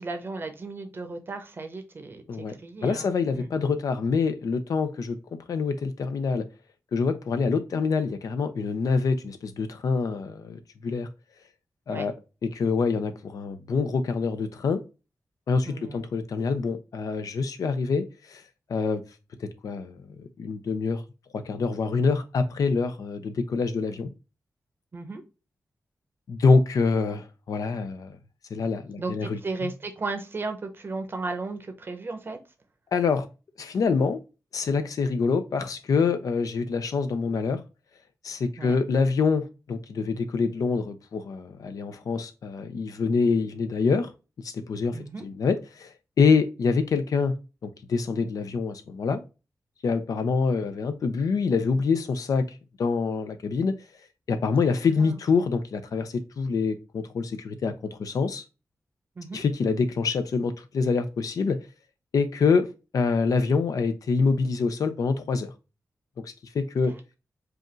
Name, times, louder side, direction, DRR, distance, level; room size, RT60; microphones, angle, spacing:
voice 1, 0.0-3.5 11.9-12.1 15.7-16.1 24.9-25.2 29.0-32.4 38.6-38.8 44.9-45.3 55.0-55.2 59.2-59.4 66.9-67.2, right 3 dB, 40° right, 0.8 m, -35 dB
voice 2, 2.8-5.2 5.5-6.5 6.9-11.1 11.9-12.1 12.4-14.8 15.5-18.4 18.7-19.0 19.4-21.0 21.3-24.1 26.3-28.1 28.5-29.7 32.9-33.3 33.6-34.2 34.5-37.6 38.2-44.1 44.4-47.3 47.6-49.2 49.8-52.5 52.8-53.7 54.3-58.4 59.3-61.6 62.1-65.5 66.2-66.9, left 4 dB, 75° left, 0.6 m, -26 dB
4.9 x 2.5 x 3.0 m
wide cardioid pair, 165°, 6 cm